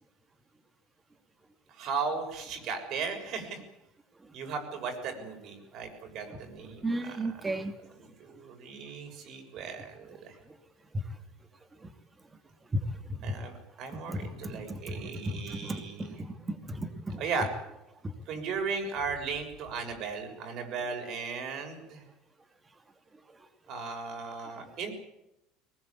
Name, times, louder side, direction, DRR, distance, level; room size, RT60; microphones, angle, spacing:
voice 1, 1.7-3.6 4.3-7.4 8.0-10.4 13.2-16.2 17.2-17.5 18.3-22.1 23.7-24.9, right 5 dB, 50° right, 5 dB, 6.8 m, -36 dB
voice 2, 6.8-7.7 10.5-10.6 10.9-11.0 11.8-11.9 12.7-12.8 13.1-13.3 14.1-17.2 18.0-18.1 24.6-24.7, right 1 dB, 15° right, 7 dB, 2.8 m, -35 dB
22.0 x 20.5 x 8.7 m, 0.88 s
cardioid pair, 140°, 0 cm